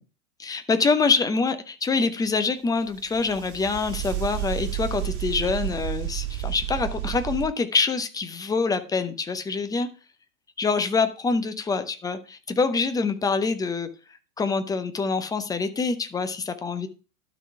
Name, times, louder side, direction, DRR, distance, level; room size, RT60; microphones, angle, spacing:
voice 1, 0.4-9.9 10.6-13.9 14.4-16.9, left 4 dB, 10° left, 9 dB, 0.7 m, -25 dB
sound 1, 2.9-7.5, right 14 dB, 35° right, 2.0 m, -31 dB
12.0 x 4.1 x 4.7 m, 0.35 s
hypercardioid pair, 100°, 43 cm